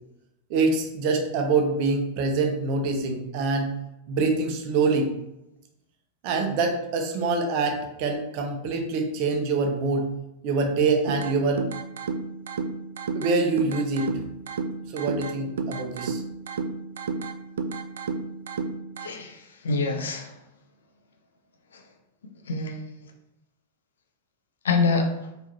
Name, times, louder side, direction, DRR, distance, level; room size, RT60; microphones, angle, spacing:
voice 1, 0.5-3.7 4.1-5.1 6.2-10.1 10.4-11.6 13.1-14.1 14.9-16.2, right 3 dB, 45° right, 3 dB, 0.8 m, -25 dB
sound 1, 11.1-19.1, right 4 dB, 65° right, 0.4 m, -32 dB
voice 2, 19.0-20.3 22.5-23.1 24.6-25.1, left 4 dB, 65° left, 4 dB, 0.7 m, -26 dB
4.5 x 3.3 x 2.8 m, 0.87 s
figure-of-eight pair, 90°, 0 cm